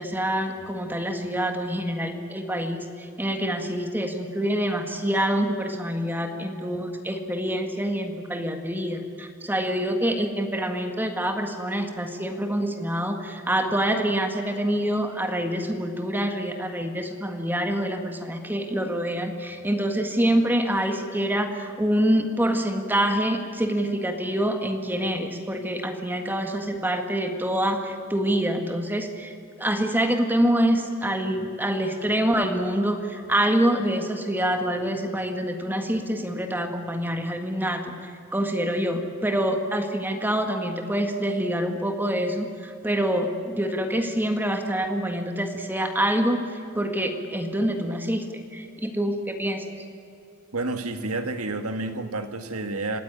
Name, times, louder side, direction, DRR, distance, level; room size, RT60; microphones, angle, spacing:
voice 1, 0.0-29.3 29.6-48.2 48.5-49.7, right 1 dB, 10° right, 5 dB, 1.7 m, -26 dB
voice 2, 50.5-53.0, right 2 dB, 85° right, 7 dB, 2.0 m, -30 dB
26.0 x 18.0 x 9.9 m, 2.6 s
head